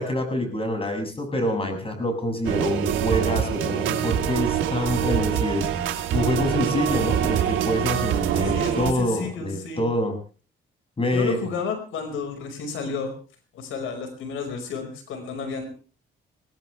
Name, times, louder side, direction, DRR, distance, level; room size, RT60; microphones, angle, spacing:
voice 1, 0.0-5.7 6.1-10.1 11.0-11.4, left 1 dB, 30° left, 5 dB, 7.0 m, -26 dB
sound 1, 2.4-8.9, right 10 dB, 80° right, 2.8 m, -24 dB
voice 2, 8.5-9.8 11.1-13.1 13.5-15.7, left 5 dB, 85° left, 7 dB, 5.3 m, -31 dB
22.5 x 18.0 x 3.4 m, 0.37 s
cardioid pair, 90°, 20 cm